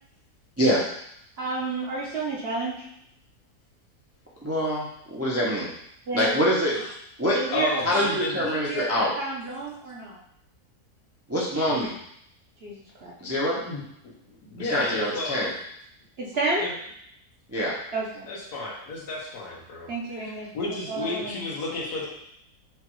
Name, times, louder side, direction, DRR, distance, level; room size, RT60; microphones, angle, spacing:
voice 1, 1.4-3.0 6.1-6.3 7.3-8.1 8.5-10.2 12.6-13.1 16.2-16.6 17.9-18.3 19.9-20.5 20.9-21.4, right 2 dB, 50° right, -4 dB, 0.9 m, -30 dB
voice 2, 4.4-5.7 6.1-6.7 7.2-7.4 7.8-9.1 11.3-12.0 13.2-13.6 14.6-15.5 17.5-17.7, equal, 20° right, -5 dB, 0.4 m, -25 dB
voice 3, 7.5-8.4 13.6-13.8 14.5-15.5 16.6-16.8 18.3-19.9 20.2-22.1, left 2 dB, 90° left, -3 dB, 1.6 m, -32 dB
6.5 x 2.4 x 3.0 m, 0.72 s
omnidirectional pair, 1.6 m